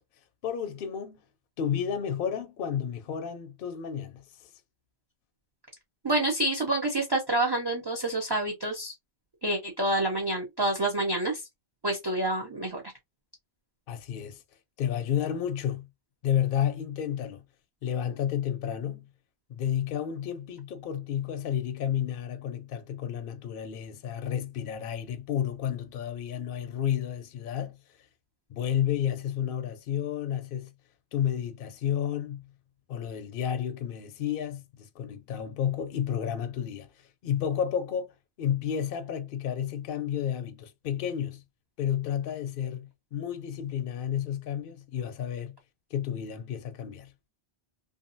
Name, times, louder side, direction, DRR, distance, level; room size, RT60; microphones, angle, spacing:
voice 1, 0.4-1.2 1.6-4.5 13.9-14.4 14.8-15.9 16.2-17.4 17.8-19.0 19.5-27.8 28.5-30.7 31.1-32.4 32.9-36.9 37.2-41.4 41.8-45.5 45.9-47.1, left 9 dB, 60° left, 0.7 m, -31 dB
voice 2, 6.0-8.9 9.4-11.4 11.8-12.8, right 1 dB, 30° right, 0.6 m, -28 dB
2.7 x 2.4 x 2.5 m
omnidirectional pair, 1.1 m